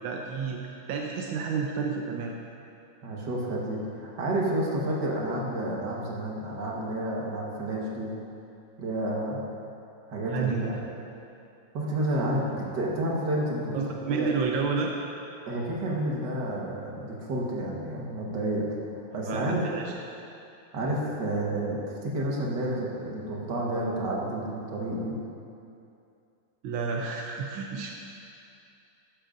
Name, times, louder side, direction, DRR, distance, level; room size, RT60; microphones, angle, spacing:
voice 1, 0.0-2.3 10.3-10.7 13.7-14.9 19.3-19.9 26.6-27.9, right 5 dB, 90° right, 0 dB, 1.5 m, -30 dB
voice 2, 3.0-8.1 8.8-9.4 10.1-10.8 11.7-13.8 14.1-14.3 15.5-18.7 19.1-19.6 20.7-25.2, right 1 dB, 65° right, -3 dB, 2.0 m, -30 dB
13.5 x 10.5 x 2.6 m, 2.6 s
omnidirectional pair, 2.1 m